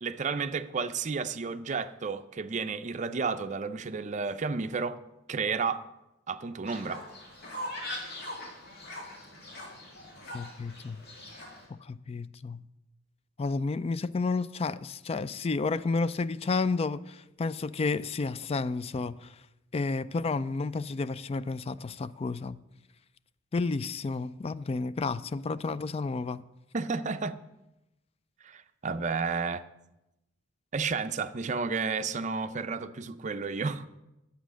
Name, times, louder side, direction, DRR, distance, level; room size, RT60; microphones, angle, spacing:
voice 1, 0.0-5.0 5.3-5.8 6.3-7.0 26.7-27.4 28.4-29.6 30.7-33.9, right 5 dB, 40° right, 0.5 m, -32 dB
Fowl, 6.7-11.7, left 1 dB, 55° left, 2.6 m, -41 dB
voice 2, 10.3-11.0 11.7-12.6 13.4-19.3 19.7-22.6 23.5-26.4, left 3 dB, 30° left, 0.3 m, -31 dB
10.5 x 8.1 x 6.2 m
head